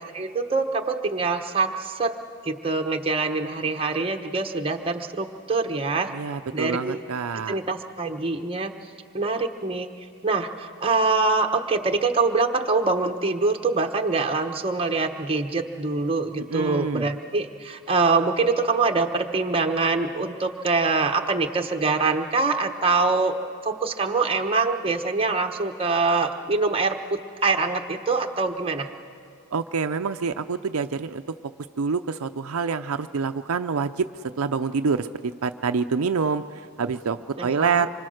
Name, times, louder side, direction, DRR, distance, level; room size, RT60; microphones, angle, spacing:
voice 1, 0.1-2.2 2.4-6.2 6.5-7.0 7.5-8.7 9.1-9.9 10.2-28.9 37.4-37.9, right 3 dB, 25° right, 4 dB, 1.1 m, -24 dB
voice 2, 6.1-7.6 16.5-17.1 29.5-31.2 31.8-34.1 34.4-37.9, right 5 dB, 75° right, 8 dB, 0.5 m, -26 dB
25.5 x 24.5 x 6.4 m, 2.3 s
head